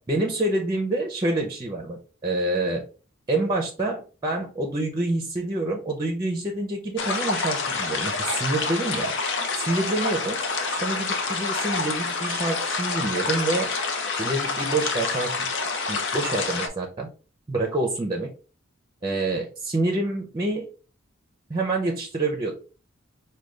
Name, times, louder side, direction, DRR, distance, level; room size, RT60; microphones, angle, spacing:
voice 1, 0.1-2.8 3.3-9.1 9.6-10.4 10.7-13.7 14.1-15.3 15.9-17.1 17.5-18.3 19.0-20.7 21.5-22.5, right 2 dB, 20° right, 2 dB, 0.6 m, -27 dB
sound 1, 7.0-16.7, left 4 dB, 65° left, 0.7 m, -27 dB
5.0 x 2.2 x 3.2 m, 0.36 s
head